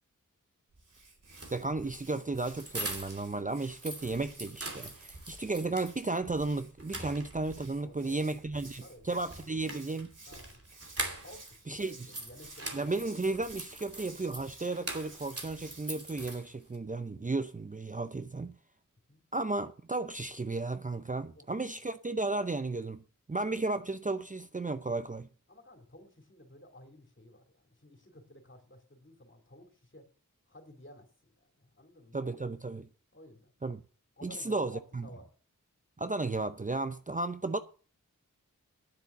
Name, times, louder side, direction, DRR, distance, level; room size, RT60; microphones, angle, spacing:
Hands, 0.7-16.1, right 2 dB, 70° right, 3.5 m, -54 dB
sound 1, 1.2-3.3 3.6-6.0 6.4-6.5 6.8-7.6 9.2-11.5 11.8-16.8, right 2 dB, 45° right, 2.8 m, -42 dB
voice 1, 1.5-10.1 11.7-12.0 12.7-18.5 19.3-23.0 23.3-25.3 32.1-32.8 33.6-33.8 34.2-35.1 36.0-37.6, right 3 dB, 25° right, 0.6 m, -34 dB
voice 2, 7.8-8.2 8.8-9.7 10.3-10.6 11.2-13.1 19.1-19.2 21.3-21.5 21.8-21.9 25.5-30.1 30.5-32.5 33.1-33.5 34.2-35.3, left 1 dB, 40° left, 3.4 m, -55 dB
9.9 x 7.8 x 7.1 m
cardioid pair, 45°, 32 cm